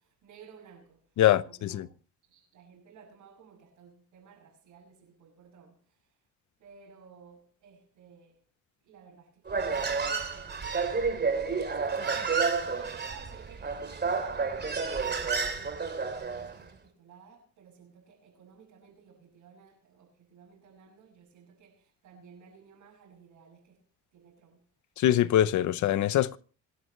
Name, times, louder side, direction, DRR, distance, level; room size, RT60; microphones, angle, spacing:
voice 1, 0.2-1.0 1.4-1.8 2.3-5.8 6.6-8.4 8.8-10.8 11.1-12.0 12.6-21.8 22.0-23.8 24.1-24.6, right 6 dB, 80° right, 6.5 m, -55 dB
voice 2, 1.2-1.9 25.0-26.4, left 12 dB, 75° left, 0.8 m, -24 dB
Human voice, 9.5-16.5, right 5 dB, 35° right, 2.9 m, -30 dB
26.5 x 11.5 x 3.2 m
cardioid pair, 90°, 30 cm